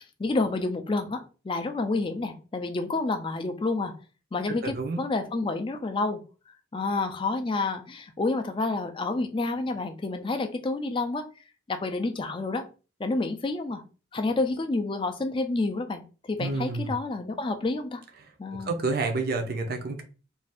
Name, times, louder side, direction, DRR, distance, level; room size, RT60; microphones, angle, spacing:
voice 1, 0.2-3.9 4.3-6.2 6.7-11.2 11.7-12.6 13.0-13.8 14.1-16.0 16.3-18.0 18.4-18.8, left 3 dB, 25° left, 6 dB, 0.3 m, -29 dB
voice 2, 4.5-5.0 16.4-16.9 18.2-18.3 18.6-20.0, right 3 dB, 50° right, 4 dB, 0.5 m, -29 dB
2.6 x 2.4 x 3.3 m, 0.34 s
head